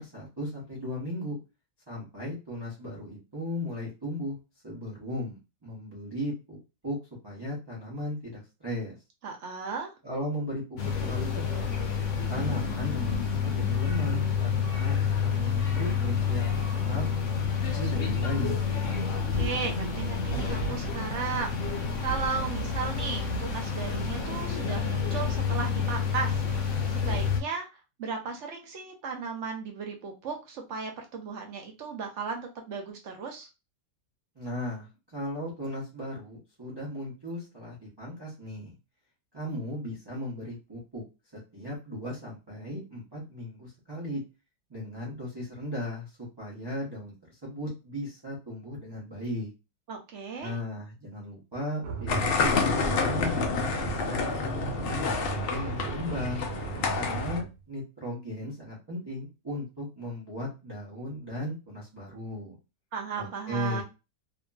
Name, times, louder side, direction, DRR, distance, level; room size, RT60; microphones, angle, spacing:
voice 1, 0.0-1.4 1.9-4.4 4.6-6.6 6.8-7.0 7.2-8.9 10.0-11.6 12.3-16.4 16.8-18.6 34.3-38.7 39.3-41.0 41.3-44.2 44.7-49.5 50.4-56.4 56.9-62.6 63.2-63.8, left 1 dB, 25° right, -6 dB, 0.6 m, -36 dB
voice 2, 9.2-9.9 19.3-27.7 28.0-33.5 49.9-50.5 62.9-63.8, right 5 dB, 65° right, 3 dB, 0.8 m, -35 dB
sound 1, 10.8-27.4, left 6 dB, 60° left, 1.0 m, -29 dB
sound 2, 51.8-57.5, right 6 dB, 90° right, 1.1 m, -37 dB
sound 3, 52.1-57.4, left 4 dB, 80° left, 0.5 m, -29 dB
2.8 x 2.5 x 2.2 m, 0.27 s
omnidirectional pair, 1.6 m